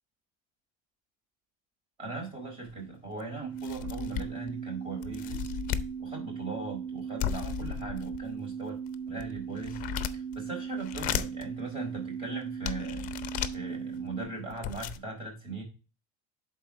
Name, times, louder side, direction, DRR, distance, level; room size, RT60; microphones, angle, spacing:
voice 1, 2.0-5.5 6.0-8.8 9.1-9.8 10.1-13.3 13.5-15.6, right 3 dB, 30° right, 1 dB, 4.1 m, -39 dB
sound 1, 2.7-2.8 3.2-3.3 3.6-4.5 5.0-5.9 7.2-8.3 8.9-10.4 10.8-11.4 12.1-12.2 12.6-13.6 14.2-14.3 14.5-15.0, left 11 dB, 45° left, 0.6 m, -35 dB
sound 2, 3.4-14.2, right 6 dB, 75° right, 2.2 m, -38 dB
10.5 x 4.2 x 3.5 m, 0.33 s
cardioid pair, 145°, 19 cm